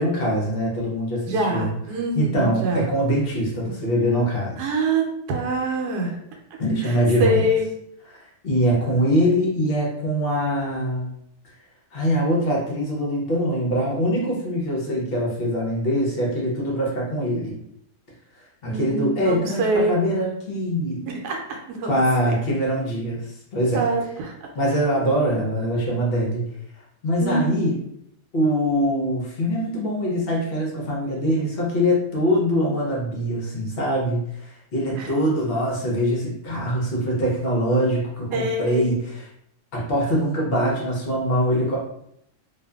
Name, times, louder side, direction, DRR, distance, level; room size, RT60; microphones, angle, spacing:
voice 1, 0.0-1.7 2.2-4.6 6.6-7.5 8.1-11.1 11.9-17.6 18.6-21.0 21.8-23.8 24.5-26.4 27.0-27.7 28.3-39.3 39.7-41.8, equal, 55° left, -3 dB, 0.7 m, -23 dB
voice 2, 1.3-2.9 4.6-6.2 6.8-7.6 18.6-20.0 21.1-22.0 22.2-22.3 23.7-24.5 27.2-27.7 35.0-35.1 38.3-39.0, right 2 dB, 80° right, 1 dB, 1.1 m, -25 dB
2.6 x 2.4 x 2.3 m, 0.75 s
omnidirectional pair, 1.7 m